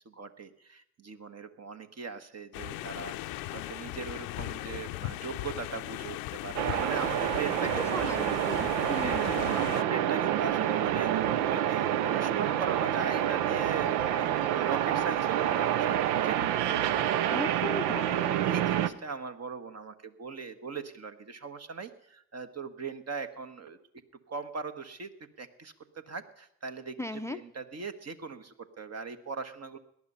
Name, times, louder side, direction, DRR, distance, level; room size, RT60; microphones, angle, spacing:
voice 1, 0.0-8.4 9.0-11.1 11.5-17.2 17.6-17.8 18.1-23.8 24.3-25.1 25.4-29.8, right 5 dB, 40° right, 8 dB, 1.4 m, -39 dB
sound 1, 2.5-9.8, left 17 dB, 70° left, 0.6 m, -38 dB
sound 2, 6.6-18.9, right 11 dB, 80° right, 0.6 m, -28 dB
voice 2, 7.8-9.5 17.3-18.4 27.0-27.4, left 1 dB, 10° left, 12 dB, 0.6 m, -37 dB
18.0 x 11.0 x 5.6 m, 0.77 s
hypercardioid pair, 45°, 37 cm